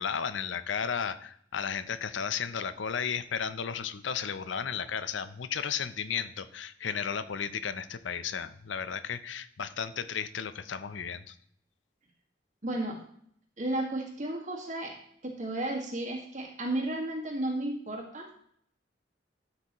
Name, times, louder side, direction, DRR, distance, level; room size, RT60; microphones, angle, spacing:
voice 1, 0.0-11.3, left 7 dB, 80° left, 13 dB, 0.6 m, -34 dB
voice 2, 12.6-13.0 13.6-15.0 15.2-18.3, right 1 dB, 40° right, 0 dB, 1.7 m, -33 dB
12.5 x 5.9 x 3.0 m, 0.65 s
head